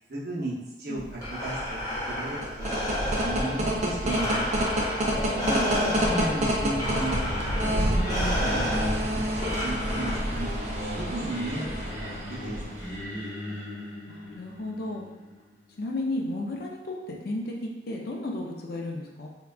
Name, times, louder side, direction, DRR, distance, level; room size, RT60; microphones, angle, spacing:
voice 1, 0.1-0.5 0.8-4.4 5.3-7.2 7.6-8.7 9.1-9.2 9.6-12.8, right 1 dB, 55° right, -7 dB, 0.8 m, -34 dB
Breathing, 1.0-10.6, left 1 dB, 20° left, 0.8 m, -32 dB
sound 1, 2.3-13.0, equal, 40° right, 0.4 m, -29 dB
Singing, 5.0-16.1, left 1 dB, 75° left, 1.1 m, -38 dB
voice 2, 5.5-6.1 14.1-15.1 15.8-19.3, left 2 dB, 55° left, 0 dB, 0.4 m, -34 dB
3.6 x 2.2 x 2.3 m, 1.1 s
head